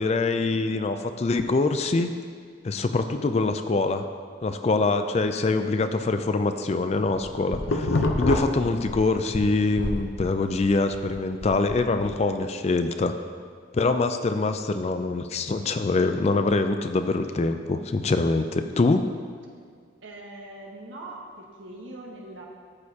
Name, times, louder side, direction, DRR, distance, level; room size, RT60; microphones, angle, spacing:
voice 1, 0.0-2.1 2.6-4.0 4.4-13.1 13.7-19.1, left 3 dB, 30° left, 8 dB, 0.3 m, -24 dB
sound 1, 6.9-9.4 9.8-12.2, left 2 dB, 70° left, 0.7 m, -28 dB
voice 2, 20.0-22.5, right 2 dB, 75° right, -1 dB, 1.4 m, -41 dB
13.5 x 6.5 x 2.8 m, 2.1 s
head